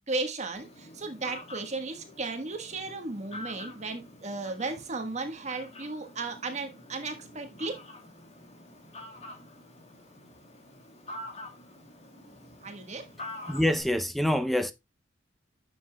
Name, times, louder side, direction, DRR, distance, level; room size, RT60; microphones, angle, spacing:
voice 1, 0.1-7.8 12.6-13.1, right 3 dB, 40° right, 1.4 m, -35 dB
Fowl, 0.5-13.8, left 1 dB, 35° left, 2.5 m, -47 dB
voice 2, 13.5-14.7, left 1 dB, ahead, 0.6 m, -26 dB
9.6 x 6.8 x 2.2 m
head